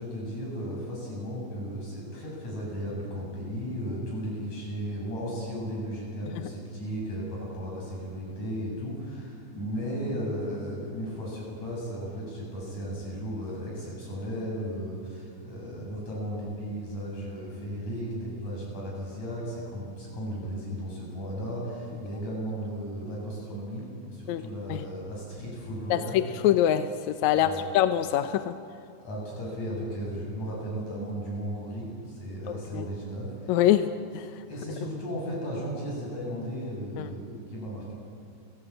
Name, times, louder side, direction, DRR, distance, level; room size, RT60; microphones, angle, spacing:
voice 1, 0.0-26.2 27.3-27.6 29.0-33.6 34.5-37.8, equal, 55° left, -4 dB, 9.5 m, -35 dB
voice 2, 25.9-28.5 32.7-32.9 33.5-34.3 37.0-37.2, left 11 dB, 75° left, 10 dB, 1.9 m, -24 dB
29.0 x 17.5 x 9.0 m, 2.4 s
omnidirectional pair, 3.8 m